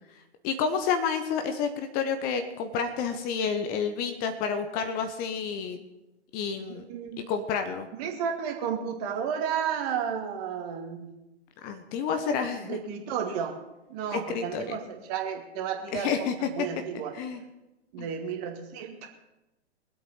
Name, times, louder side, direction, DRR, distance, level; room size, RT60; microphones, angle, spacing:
voice 1, 0.4-5.8 6.3-6.9 7.3-7.9 11.6-12.8 14.1-14.8 15.9-16.5 17.1-17.4 18.0-18.1, left 6 dB, 25° left, 7 dB, 1.2 m, -29 dB
voice 2, 6.9-7.3 8.0-11.1 12.6-13.6 13.9-17.1 17.9-19.1, right 7 dB, 35° right, 3 dB, 2.3 m, -32 dB
22.5 x 8.5 x 5.6 m, 0.96 s
figure-of-eight pair, 115°, 34 cm